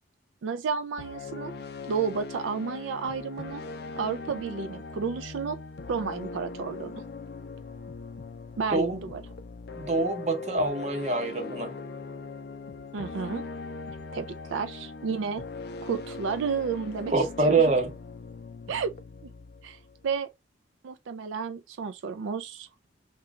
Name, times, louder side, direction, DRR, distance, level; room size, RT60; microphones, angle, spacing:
voice 1, 0.4-1.5 1.9-3.6 4.0-5.6 5.9-7.0 8.6-9.2 12.9-13.4 14.1-15.4 15.8-17.8 18.7-18.9 19.6-19.8 20.0-20.3 20.8-22.7, right 5 dB, 85° right, 0.4 m, -31 dB
sound 1, 1.0-20.2, left 4 dB, 55° left, 0.4 m, -40 dB
voice 2, 8.7-9.0 9.8-11.7 17.1-17.9, right 3 dB, 35° right, 0.8 m, -25 dB
3.0 x 2.2 x 3.6 m
head